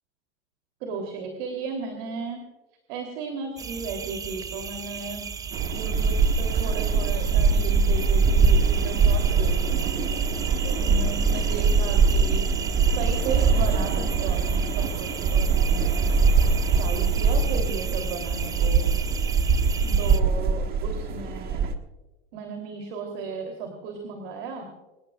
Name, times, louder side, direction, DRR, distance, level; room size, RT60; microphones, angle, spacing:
voice 1, 0.8-2.4 2.9-5.3 5.7-10.1 10.6-12.5 12.8-16.1 16.7-18.9 19.8-21.6 22.3-24.7, right 4 dB, 60° right, 4 dB, 3.3 m, -35 dB
sound 1, 3.6-20.2, right 7 dB, 10° right, 0.4 m, -36 dB
sound 2, 5.5-21.7, right 5 dB, 30° right, 1.5 m, -22 dB
26.5 x 19.5 x 2.4 m, 1.1 s
supercardioid pair, 135°, 31 cm